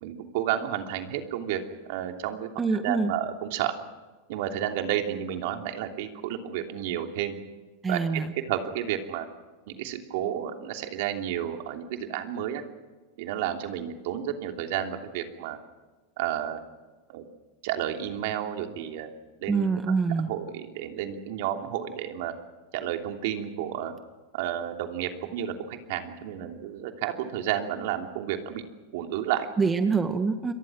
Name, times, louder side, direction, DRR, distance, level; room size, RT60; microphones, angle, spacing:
voice 1, 0.0-1.6 1.9-3.7 4.3-7.4 7.9-8.2 8.5-9.3 9.7-12.6 13.2-15.6 16.2-16.6 17.1-17.2 17.6-19.1 19.4-19.7 20.3-22.3 22.7-23.9 24.3-28.6 28.9-29.5, right 11 dB, 60° right, 5 dB, 3.0 m, -31 dB
voice 2, 2.6-3.1 7.8-8.3 19.5-20.3 29.6-30.5, right 4 dB, 20° right, 8 dB, 1.7 m, -25 dB
28.5 x 23.0 x 6.2 m, 1.3 s
hypercardioid pair, 110°, 0 cm